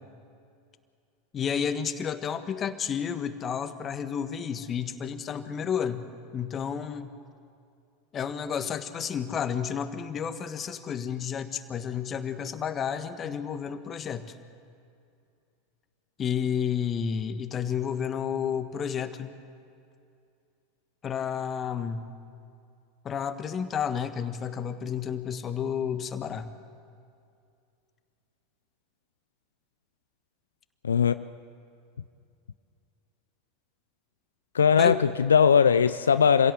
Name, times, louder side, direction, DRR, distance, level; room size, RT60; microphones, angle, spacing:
voice 1, 1.3-7.1 8.1-14.3 16.2-19.3 21.0-22.0 23.0-26.5 34.8-35.0, left 7 dB, 35° left, 10 dB, 1.4 m, -31 dB
voice 2, 30.8-31.2 34.5-36.5, left 7 dB, 85° left, 13 dB, 0.4 m, -20 dB
26.0 x 16.5 x 7.9 m, 2.5 s
hypercardioid pair, 85°, 0 cm